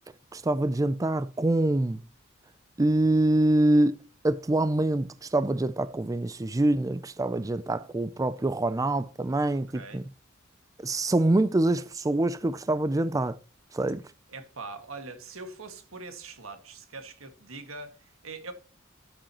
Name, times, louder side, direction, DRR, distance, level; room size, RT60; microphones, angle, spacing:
voice 1, 0.3-2.0 2.8-4.0 4.2-10.0 10.8-13.4 13.7-14.0, right 2 dB, 15° right, 0.4 m, -25 dB
voice 2, 9.7-10.1 14.3-18.5, right 3 dB, 85° right, 1.9 m, -42 dB
13.0 x 7.6 x 3.0 m
head